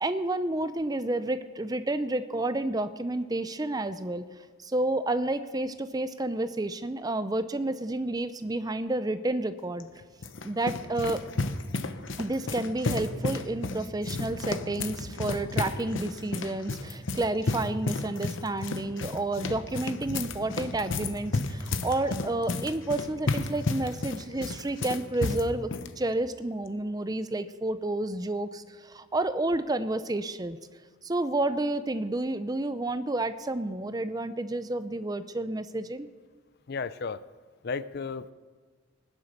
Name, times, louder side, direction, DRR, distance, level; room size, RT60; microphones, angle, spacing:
voice 1, 0.0-4.2 4.6-9.9 10.4-11.2 12.2-25.7 26.0-30.6 31.0-36.1, right 2 dB, 20° right, 12 dB, 0.5 m, -30 dB
sound 1, 9.8-25.9, left 3 dB, 75° left, 0.9 m, -33 dB
voice 2, 36.7-37.2 37.6-38.3, left 5 dB, 55° left, 15 dB, 0.5 m, -33 dB
20.0 x 9.8 x 6.6 m, 1.5 s
head